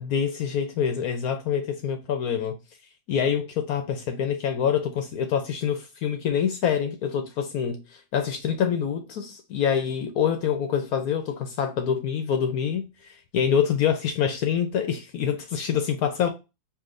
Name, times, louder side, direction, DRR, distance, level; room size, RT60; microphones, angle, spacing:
voice 1, 0.0-2.6 3.1-16.3, left 8 dB, 70° left, 1.0 m, -26 dB
4.8 x 3.1 x 2.5 m
omnidirectional pair, 1.7 m